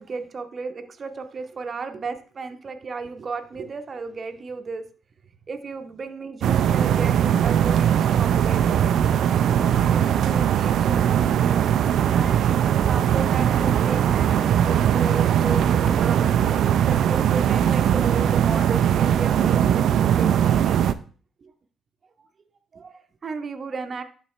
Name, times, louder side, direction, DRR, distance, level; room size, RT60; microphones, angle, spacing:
voice 1, 0.0-4.9 5.5-8.6 9.9-11.6 11.9-20.8 21.4-21.5 22.2-22.3 22.7-24.0, right 4 dB, 40° right, 7 dB, 0.8 m, -34 dB
sound 1, 6.4-20.9, right 9 dB, 75° right, 0.4 m, -20 dB
sound 2, 13.4-14.5 15.7-17.4, left 2 dB, 30° left, 1.3 m, -41 dB
11.5 x 4.1 x 3.2 m, 0.41 s
cardioid pair, 90°, 0 cm